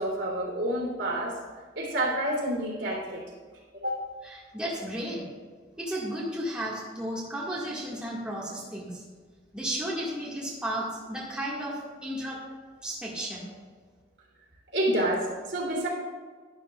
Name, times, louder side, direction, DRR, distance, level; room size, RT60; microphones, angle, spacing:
voice 1, 0.0-1.4 1.7-3.2 3.7-4.0 14.7-15.9, right 1 dB, 70° right, -3 dB, 3.2 m, -28 dB
voice 2, 4.2-5.2 5.8-9.0 9.5-12.4 12.8-13.5, right 1 dB, 5° right, -6 dB, 1.9 m, -33 dB
12.0 x 11.5 x 2.4 m, 1.5 s
head